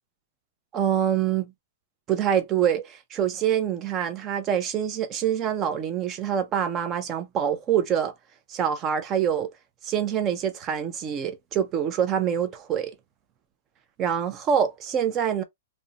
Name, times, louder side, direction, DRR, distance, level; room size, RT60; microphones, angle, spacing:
voice 1, 0.7-1.5 2.1-8.1 8.5-9.5 9.8-12.9 14.0-15.4, right 9 dB, 20° right, 0.5 m, -25 dB
2.5 x 2.1 x 2.7 m
hypercardioid pair, 160°, 0 cm